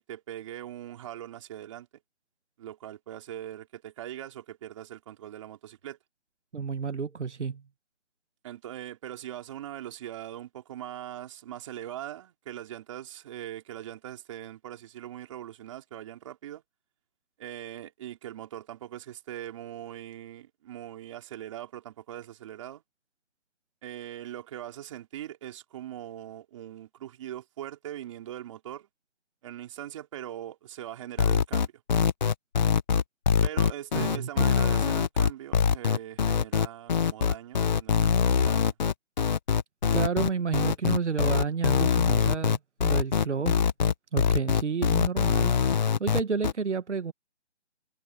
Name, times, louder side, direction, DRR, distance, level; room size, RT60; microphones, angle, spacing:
voice 1, 0.0-1.9 2.6-6.0 8.4-16.6 17.4-22.8 23.8-28.9 29.4-31.8 33.4-38.8, right 12 dB, 25° right, 3.9 m, -41 dB
voice 2, 6.5-7.6 33.9-34.3 39.9-43.6 44.1-47.1, right 5 dB, 80° right, 1.5 m, -31 dB
sound 1, 31.2-46.5, left 7 dB, 40° left, 1.1 m, -23 dB
hypercardioid pair, 165°, 35 cm